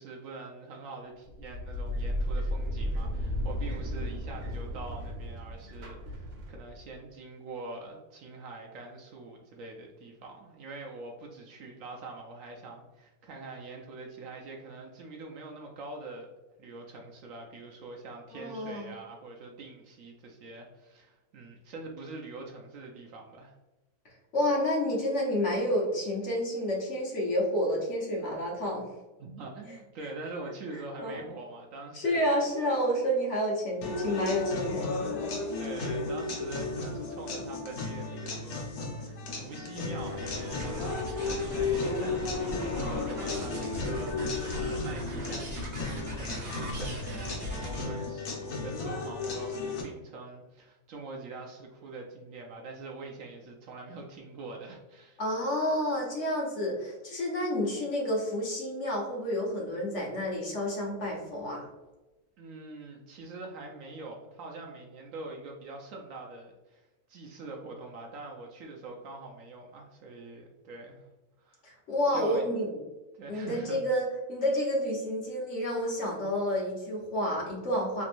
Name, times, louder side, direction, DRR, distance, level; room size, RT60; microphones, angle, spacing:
voice 1, 0.0-16.3 16.6-23.6 29.2-32.2 35.6-38.7 39.0-55.2 62.4-71.0 71.4-71.6 72.1-72.5 73.2-73.8, right 3 dB, 70° right, 0 dB, 0.9 m, -44 dB
sound 1, 1.3-6.9, equal, 85° right, 1.2 m, -34 dB
voice 2, 18.3-18.9 24.3-28.8 30.7-31.2 31.9-35.3 55.2-61.6 71.6-72.7 73.3-78.0, equal, 55° left, -2 dB, 1.1 m, -30 dB
sound 2, 33.8-49.8, left 3 dB, 75° left, 1.3 m, -34 dB
sound 3, 40.0-47.9, equal, 50° right, 1.4 m, -38 dB
3.3 x 3.0 x 2.5 m, 1.1 s
omnidirectional pair, 1.6 m